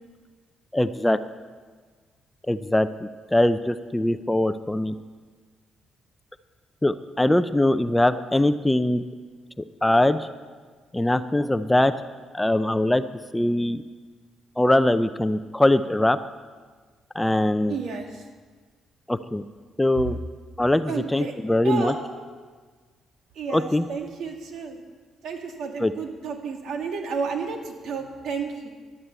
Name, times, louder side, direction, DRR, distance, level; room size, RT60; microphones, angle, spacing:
voice 1, 0.7-1.2 2.5-4.9 6.8-9.0 9.6-10.3 10.9-11.9 12.3-13.0 13.3-13.8 14.6-16.2 17.1-17.8 19.1-19.4 19.8-20.2 20.6-21.9 23.5-23.9 25.8-25.9, left 1 dB, 10° left, 12 dB, 0.6 m, -22 dB
voice 2, 17.7-18.2 20.9-21.3 21.6-21.9 23.3-24.8 25.2-28.7, right 5 dB, 70° right, 3 dB, 2.3 m, -31 dB
12.0 x 11.0 x 8.3 m, 1.5 s
cardioid pair, 90°, 0 cm